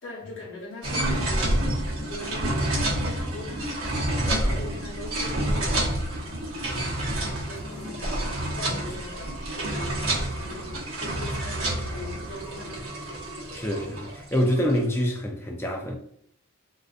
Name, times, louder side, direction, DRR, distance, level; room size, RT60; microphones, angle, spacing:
voice 1, 0.0-3.7 4.2-6.0 6.2-13.0, left 2 dB, 60° left, 0.8 m, -41 dB
sound 1, 0.8-14.8, right 1 dB, 70° right, 0.9 m, -29 dB
voice 2, 4.1-4.7 6.7-6.8 8.9-9.0 13.5-16.0, equal, 10° left, 0.3 m, -27 dB
sound 2, 4.3-14.1, right 2 dB, 10° right, 0.7 m, -49 dB
sound 3, 7.3-7.9, left 4 dB, 30° left, 0.9 m, -46 dB
2.4 x 2.3 x 2.4 m
head